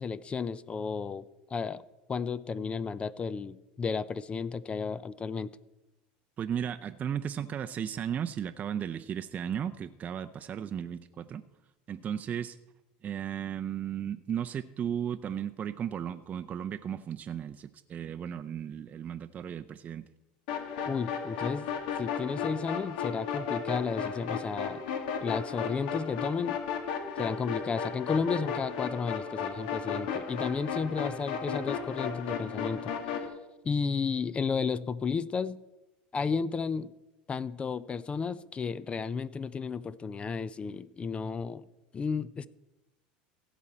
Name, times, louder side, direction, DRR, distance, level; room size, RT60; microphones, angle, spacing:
voice 1, 0.0-1.8 2.1-5.5 20.9-21.7 22.0-24.8 25.2-26.6 27.2-32.9 33.6-35.6 36.1-36.9 37.3-41.6 41.9-42.5, left 5 dB, 25° left, 18 dB, 0.4 m, -33 dB
voice 2, 6.4-11.5 11.9-12.6 13.0-20.1, right 9 dB, 35° right, 9 dB, 0.5 m, -35 dB
sound 1, 20.5-33.3, left 6 dB, 75° left, 1.9 m, -34 dB
16.5 x 7.2 x 4.3 m, 1.0 s
hypercardioid pair, 100°, 5 cm